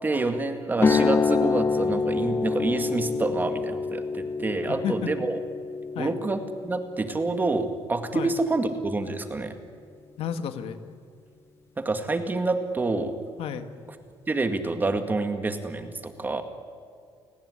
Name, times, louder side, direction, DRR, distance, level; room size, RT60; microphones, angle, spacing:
voice 1, 0.0-5.4 6.0-9.5 11.8-13.1 14.3-16.4, right 3 dB, 20° right, 7 dB, 2.1 m, -27 dB
sound 1, 0.8-8.8, left 4 dB, 25° left, 0.7 m, -27 dB
voice 2, 4.7-5.1 6.0-6.2 8.1-8.3 10.2-10.8 13.4-13.7, left 8 dB, 70° left, 9 dB, 1.9 m, -31 dB
29.5 x 18.0 x 9.8 m, 2.2 s
cardioid pair, 150°, 10 cm